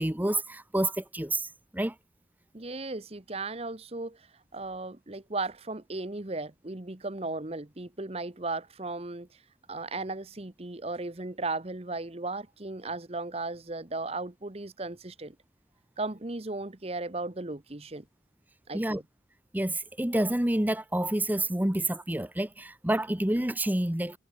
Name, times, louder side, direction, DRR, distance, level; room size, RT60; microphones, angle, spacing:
voice 1, 0.0-1.9 18.7-19.0 19.5-24.2, right 1 dB, 10° right, 0.9 m, -28 dB
voice 2, 2.5-4.3 4.5-9.3 9.7-15.4 16.0-18.1 18.7-19.0, right 3 dB, 30° right, 1.1 m, -36 dB
head